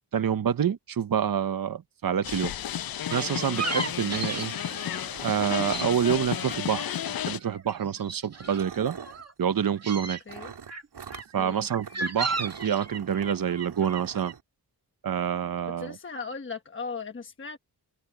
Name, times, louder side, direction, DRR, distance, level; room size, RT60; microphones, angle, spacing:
voice 1, 0.1-2.5 3.1-4.5 5.2-9.0 9.4-10.2 11.3-14.3 15.0-16.0, right 8 dB, 60° right, 0.8 m, -27 dB
sound 1, 2.2-7.4, left 10 dB, 60° left, 0.5 m, -32 dB
sound 2, 3.1-5.9 6.2-7.0 7.3-9.3 9.7-10.2 10.7-14.3, right 3 dB, 40° right, 1.8 m, -36 dB
sound 3, 3.1-3.2 3.4-3.5 3.8-6.5 7.5-7.7 8.3-9.3 10.3-11.3 11.8-12.0 12.3-14.4, right 6 dB, 85° right, 3.9 m, -45 dB
voice 2, 11.4-11.7 15.8-17.6, left 5 dB, 30° left, 1.1 m, -37 dB
open air
wide cardioid pair, 155°, 40 cm